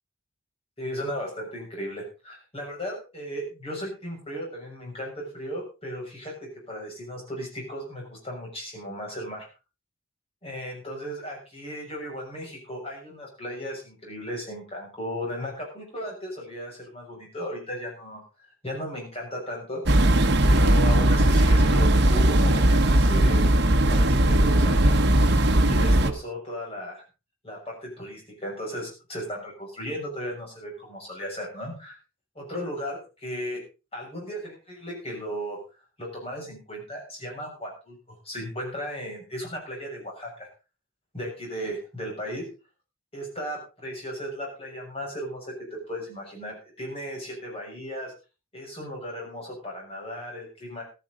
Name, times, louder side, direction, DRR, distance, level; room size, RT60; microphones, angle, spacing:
voice 1, 0.8-6.3 6.7-9.5 10.4-19.8 20.4-23.4 23.9-25.1 25.6-27.0 27.4-31.9 32.3-33.6 33.9-35.6 36.0-40.5 41.1-42.5 43.1-45.5 45.9-48.1 48.5-50.8, equal, 30° left, -1 dB, 6.7 m, -36 dB
sound 1, 19.9-26.1, right 1 dB, 55° right, 1.2 m, -19 dB
15.0 x 12.5 x 3.9 m, 0.31 s
head